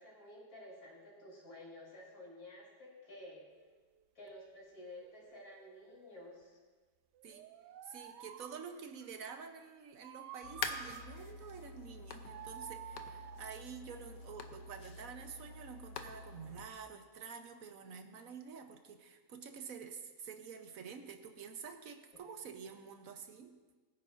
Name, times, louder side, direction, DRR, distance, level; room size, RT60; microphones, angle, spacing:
voice 1, 0.0-3.4 4.2-6.6, left 1 dB, 60° left, -4 dB, 4.2 m, -52 dB
sound 1, 3.5-3.6 4.9-6.5 7.1-9.1 10.0-11.5 12.3-13.7 14.6-14.9, right 10 dB, 90° right, 1.3 m, -52 dB
voice 2, 7.8-23.5, right 6 dB, 60° right, 6 dB, 1.3 m, -49 dB
sound 2, 10.4-16.7, left 5 dB, 80° left, 1.4 m, -46 dB
21.0 x 10.0 x 2.6 m, 1.4 s
omnidirectional pair, 1.8 m